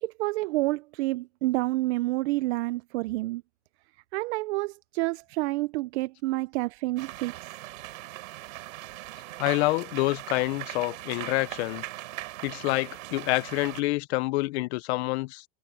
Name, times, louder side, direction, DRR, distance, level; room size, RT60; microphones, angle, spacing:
voice 1, 0.0-3.4 4.1-7.5, right 20 dB, 55° right, 0.5 m, -29 dB
sound 1, 7.0-13.8, right 17 dB, 80° right, 4.0 m, -40 dB
voice 2, 9.4-11.8 12.4-15.4, left 21 dB, 55° left, 0.6 m, -27 dB
supercardioid pair, 170°, 40 cm